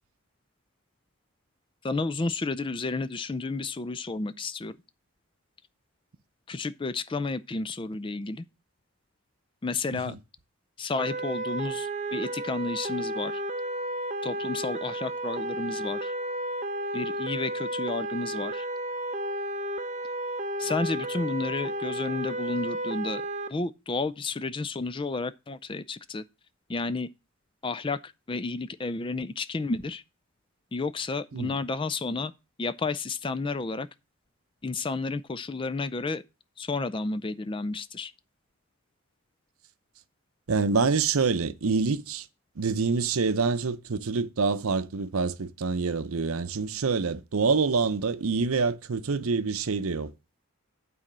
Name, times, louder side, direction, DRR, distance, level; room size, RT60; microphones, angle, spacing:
voice 1, 1.8-4.7 6.5-8.4 9.6-10.2 10.8-13.4 14.2-16.1 16.9-18.7 20.6-23.2 23.5-26.2 26.7-27.1 27.6-30.0 30.7-32.3 32.6-33.9 34.6-36.2 36.6-38.1, left 3 dB, 25° left, 0.4 m, -31 dB
sound 1, 11.0-23.5, right 1 dB, 35° right, 0.7 m, -32 dB
voice 2, 40.5-42.3 42.6-50.1, right 4 dB, 75° right, 0.7 m, -26 dB
9.1 x 4.2 x 7.3 m
head